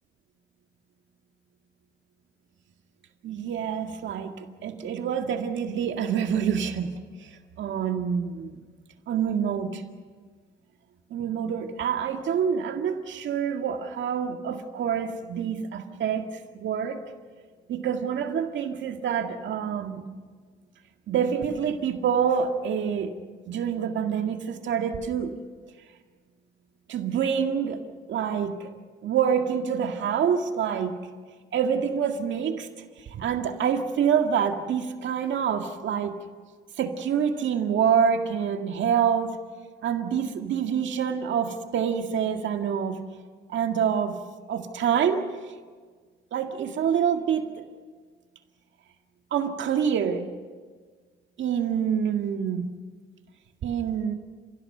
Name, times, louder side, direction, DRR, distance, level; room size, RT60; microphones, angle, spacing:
voice 1, 3.2-6.9 7.2-7.3 7.6-8.6 9.1-9.8 11.1-16.3 16.5-17.0 17.7-20.0 21.1-23.1 23.5-25.3 26.9-27.8 28.1-28.7 29.0-30.9 31.5-32.7 33.1-36.2 36.8-39.4 39.8-43.0 43.5-44.2 44.5-45.3 46.3-47.6 49.3-50.3 51.4-52.7 53.6-54.1, right 7 dB, 70° right, 5 dB, 2.0 m, -26 dB
30.0 x 16.5 x 6.8 m, 1.5 s
cardioid pair, 90°, 20 cm